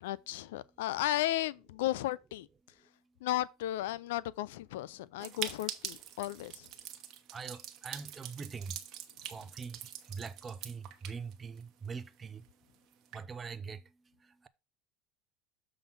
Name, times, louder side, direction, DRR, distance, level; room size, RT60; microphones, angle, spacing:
voice 1, 0.0-2.5 3.2-6.7, left 15 dB, 85° left, 0.4 m, -34 dB
sound 1, 5.2-11.9 12.2-12.3 12.4-12.5 12.9-13.2, right 11 dB, 50° right, 1.0 m, -44 dB
voice 2, 7.3-8.8 9.3-9.8 10.1-12.4 13.1-13.8, right 5 dB, 25° right, 0.6 m, -42 dB
7.0 x 3.8 x 5.3 m
supercardioid pair, 110°, 0 cm